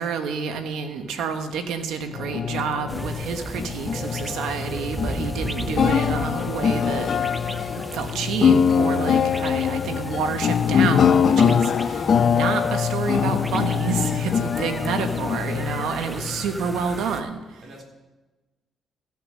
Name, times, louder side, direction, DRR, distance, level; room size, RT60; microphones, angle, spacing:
voice 1, 0.0-7.1 7.9-17.4, right 5 dB, 85° right, 7 dB, 1.1 m, -29 dB
sound 1, 2.1-16.8, left 7 dB, 55° left, 0.4 m, -23 dB
sound 2, 2.9-17.2, right 1 dB, 10° right, 0.6 m, -36 dB
voice 2, 15.8-16.2 16.7-16.9 17.6-17.8, right 1 dB, 30° right, 0 dB, 3.4 m, -44 dB
14.5 x 5.9 x 6.3 m, 1.1 s
cardioid pair, 90°, 0 cm